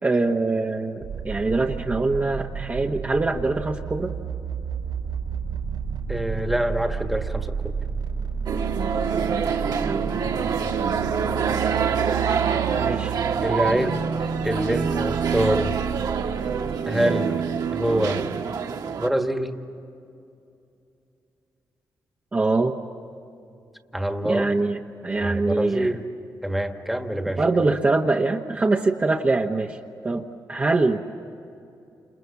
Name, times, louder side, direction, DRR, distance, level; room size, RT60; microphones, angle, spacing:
voice 1, 0.0-4.1 9.2-9.5 9.9-10.4 12.7-13.1 13.7-13.9 22.3-22.7 24.2-24.8 25.0-25.9 27.4-29.8 30.0-31.0, right 3 dB, 25° right, 1 dB, 1.1 m, -24 dB
sound 1, 1.0-16.8, right 6 dB, 85° right, 5.8 m, -31 dB
voice 2, 6.1-7.7 13.4-14.0 14.4-15.8 16.9-17.4 17.7-18.2 19.0-19.6 23.9-24.5 25.1-26.1 26.4-27.4, right 1 dB, ahead, 5 dB, 1.5 m, -25 dB
sound 2, 8.5-19.1, right 6 dB, 65° right, 1.4 m, -26 dB
29.5 x 28.5 x 7.1 m, 2.6 s
wide cardioid pair, 140°, 7 cm